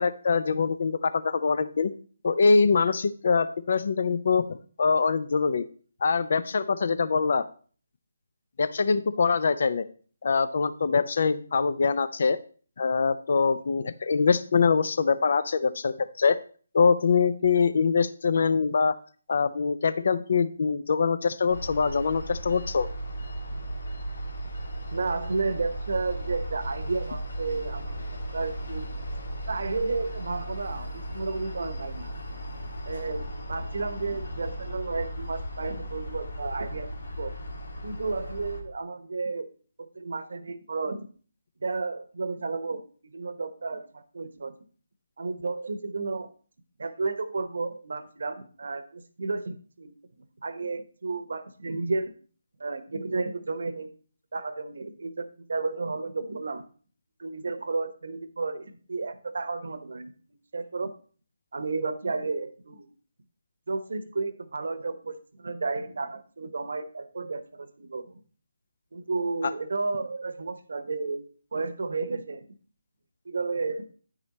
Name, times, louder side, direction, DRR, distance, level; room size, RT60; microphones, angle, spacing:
voice 1, 0.0-1.9 2.2-5.6 6.0-7.4 8.6-9.8 10.2-12.4 12.8-16.4 16.7-19.0 19.3-22.9, left 5 dB, 55° left, 13 dB, 0.5 m, -24 dB
sound 1, 21.5-38.6, right 1 dB, 80° left, 1.6 m, -36 dB
voice 2, 24.9-28.0 28.3-28.9 29.5-32.1 32.9-37.3 37.8-39.5 39.8-41.1 41.6-42.8 43.1-44.5 45.2-46.3 46.8-49.9 50.4-52.1 52.6-53.9 54.3-56.7 57.2-60.1 60.5-60.9 61.5-62.9 63.7-68.1 68.9-71.2 71.5-72.4 73.2-73.8, right 3 dB, 70° right, 10 dB, 0.9 m, -32 dB
9.8 x 5.0 x 4.1 m, 0.42 s
hypercardioid pair, 160°, 0 cm